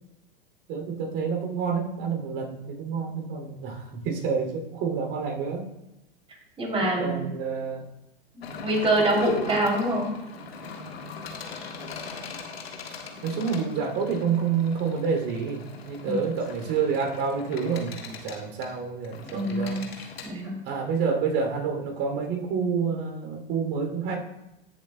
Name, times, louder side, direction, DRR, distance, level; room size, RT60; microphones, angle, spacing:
voice 1, 0.7-5.7 6.8-7.9 13.2-20.1 20.6-24.2, right 5 dB, 45° right, 2 dB, 2.8 m, -28 dB
voice 2, 6.6-7.3 8.3-10.1 16.0-16.2 19.2-19.8 20.2-20.6, right 1 dB, 20° right, -1 dB, 2.9 m, -25 dB
sound 1, 8.4-20.3, left 4 dB, 85° left, 1.5 m, -40 dB
14.5 x 7.3 x 2.2 m, 0.94 s
hypercardioid pair, 115°, 30 cm